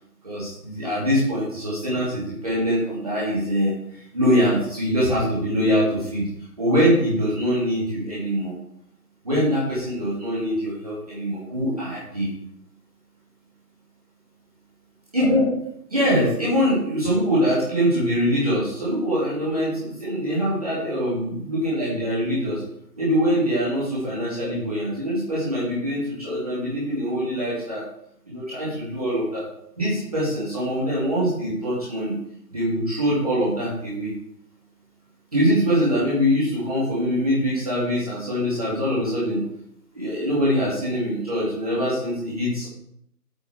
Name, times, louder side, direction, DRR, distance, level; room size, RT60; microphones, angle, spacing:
voice 1, 0.2-6.3 6.6-8.5 9.2-12.3 15.1-15.5 15.9-22.6 23.0-27.8 28.3-29.5 29.8-32.1 32.5-34.1 35.3-39.4 39.9-42.7, equal, 25° right, -9 dB, 2.4 m, -23 dB
7.8 x 5.7 x 4.6 m, 0.72 s
figure-of-eight pair, 175°, 48 cm